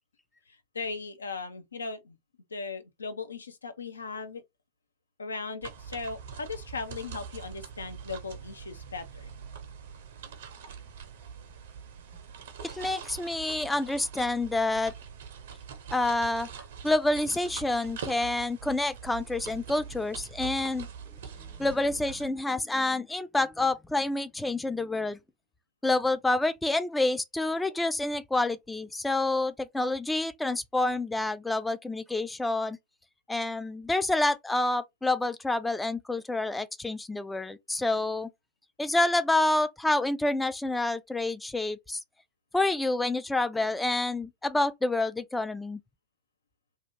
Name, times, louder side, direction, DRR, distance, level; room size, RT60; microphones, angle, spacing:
voice 1, 0.7-2.2 2.5-4.4 5.2-9.3, left 4 dB, 75° left, 0.5 m, -38 dB
sound 1, 5.6-22.3, right 7 dB, 55° right, 0.6 m, -44 dB
voice 2, 12.6-14.9 15.9-20.9 21.4-25.2 25.8-32.8 33.3-38.3 38.8-42.0 42.5-45.8, left 2 dB, 5° left, 0.3 m, -28 dB
2.7 x 2.4 x 3.0 m
figure-of-eight pair, 90°, 0 cm